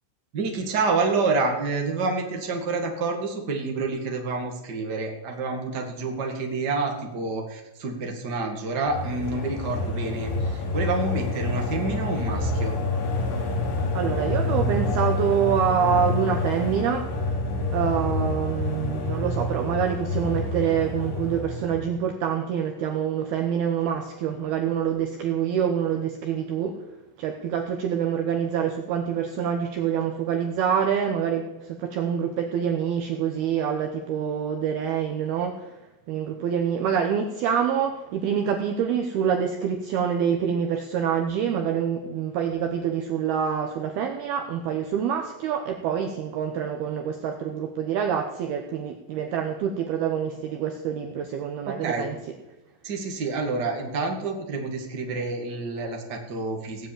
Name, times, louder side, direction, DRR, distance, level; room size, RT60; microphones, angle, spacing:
voice 1, 0.3-12.7 51.7-52.1 52.8-56.9, right 3 dB, 55° right, 1 dB, 1.1 m, -28 dB
sound 1, 8.9-22.0, left 2 dB, 60° left, 4.3 m, -28 dB
voice 2, 13.9-17.1 17.7-26.8 27.2-35.7 36.1-52.2, right 8 dB, 75° right, 4 dB, 2.3 m, -26 dB
18.0 x 7.4 x 9.0 m, 0.98 s
omnidirectional pair, 5.7 m